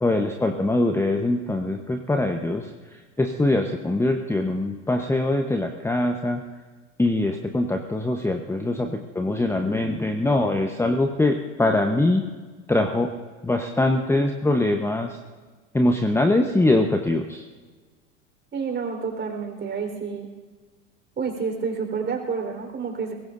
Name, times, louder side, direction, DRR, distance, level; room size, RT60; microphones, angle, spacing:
voice 1, 0.0-6.4 7.0-12.2 12.7-13.1 13.4-15.2 15.7-17.5, left 2 dB, 5° left, 5 dB, 1.0 m, -23 dB
voice 2, 18.5-20.3 21.2-23.1, right 5 dB, 25° right, 2 dB, 4.3 m, -29 dB
23.0 x 21.0 x 2.6 m, 1.4 s
hypercardioid pair, 80°, 38 cm